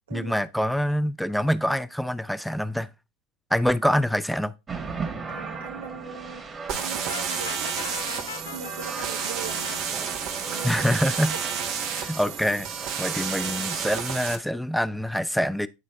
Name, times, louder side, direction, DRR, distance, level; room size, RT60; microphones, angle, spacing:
voice 1, 0.1-2.9 3.5-4.5 10.6-11.3 11.9-12.7 13.0-15.7, equal, ahead, 0.5 m, -25 dB
sound 1, 4.7-14.0, right 4 dB, 25° right, 1.7 m, -38 dB
voice 2, 5.3-6.4 6.7-8.0 8.4-9.8 10.5-10.9 11.2-11.4 12.9-13.0, right 6 dB, 80° right, 1.1 m, -40 dB
sound 2, 6.7-14.4, right 7 dB, 55° right, 1.3 m, -31 dB
Brass instrument, 7.1-9.8, left 9 dB, 80° left, 0.3 m, -39 dB
9.6 x 4.0 x 3.4 m
hypercardioid pair, 85°, 0 cm